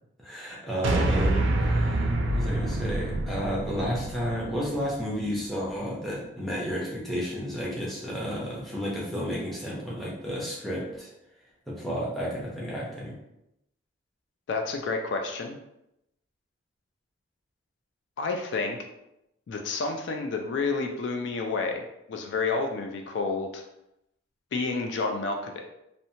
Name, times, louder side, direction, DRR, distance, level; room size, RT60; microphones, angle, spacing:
voice 1, 0.2-11.1 11.7-13.2, equal, ahead, -6 dB, 0.6 m, -32 dB
sound 1, 0.8-5.3, right 1 dB, 75° right, 0.3 m, -27 dB
voice 2, 14.5-15.6 18.2-18.8 19.5-23.6 24.5-25.6, left 4 dB, 65° left, 4 dB, 0.3 m, -30 dB
2.8 x 2.1 x 2.7 m, 0.85 s
head